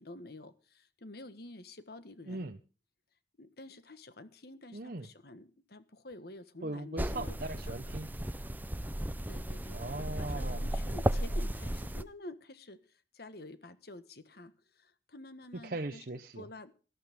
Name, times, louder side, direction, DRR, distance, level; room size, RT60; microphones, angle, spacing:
voice 1, 0.0-2.5 3.4-7.4 7.7-7.8 9.3-9.8 10.2-16.0 16.4-16.7, left 2 dB, 55° left, 12 dB, 1.5 m, -49 dB
voice 2, 2.3-2.6 4.7-5.1 6.6-8.1 9.7-10.6 15.6-16.4, right 2 dB, 50° right, 5 dB, 0.9 m, -39 dB
sound 1, 7.0-12.0, right 1 dB, 10° right, 0.7 m, -34 dB
18.0 x 14.0 x 3.6 m, 0.36 s
head